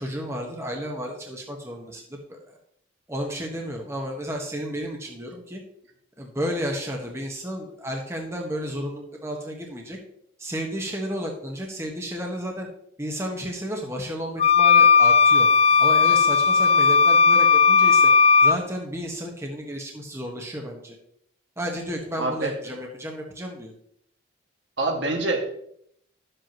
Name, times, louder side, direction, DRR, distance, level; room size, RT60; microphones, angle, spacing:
voice 1, 0.0-2.4 3.1-5.6 6.2-10.0 10.4-12.7 13.0-15.5 15.8-18.1 18.4-21.0 21.6-23.7, equal, 15° right, 1 dB, 1.4 m, -32 dB
sound 1, 14.4-18.6, left 5 dB, 30° left, 0.3 m, -16 dB
voice 2, 22.2-22.5 24.8-25.6, right 2 dB, 65° right, 1 dB, 2.1 m, -25 dB
12.5 x 7.9 x 3.1 m, 0.69 s
head